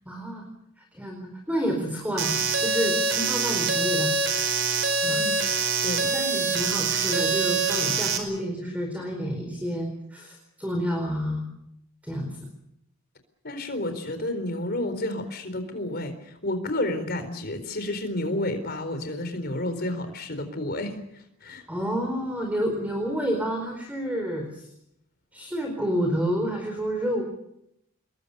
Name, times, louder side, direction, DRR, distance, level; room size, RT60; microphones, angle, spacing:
voice 1, 0.1-0.5 0.8-4.1 5.0-5.2 6.0-11.4 12.0-12.4 21.7-24.7 25.3-27.2, equal, 5° right, 3 dB, 4.6 m, -29 dB
sound 1, 2.2-8.2, right 4 dB, 55° right, 5.0 m, -25 dB
voice 2, 5.8-6.1 13.4-21.7, left 1 dB, 45° left, 9 dB, 4.3 m, -31 dB
28.5 x 22.0 x 6.9 m, 0.79 s
head